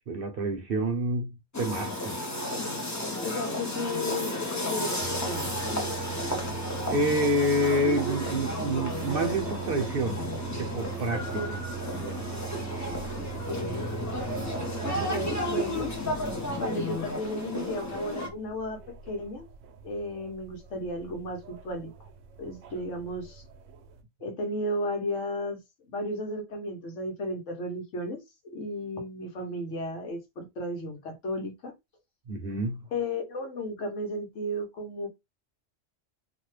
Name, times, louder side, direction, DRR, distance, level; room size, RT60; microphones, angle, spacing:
voice 1, 0.1-2.2 6.9-10.2 10.6-11.2 11.9-12.2 15.0-15.1 32.3-32.8, right 1 dB, 55° right, 0.8 m, -28 dB
sound 1, 1.5-18.3, left 1 dB, 20° left, 0.5 m, -33 dB
voice 2, 3.2-5.5 11.1-11.6 13.5-13.9 14.8-15.9 16.6-19.5 19.8-22.1 22.4-23.4 24.2-25.6 25.9-31.7 32.9-35.1, left 1 dB, 80° left, 1.3 m, -34 dB
sound 2, 5.0-24.0, right 11 dB, 90° right, 0.9 m, -41 dB
3.0 x 2.2 x 3.2 m
omnidirectional pair, 1.3 m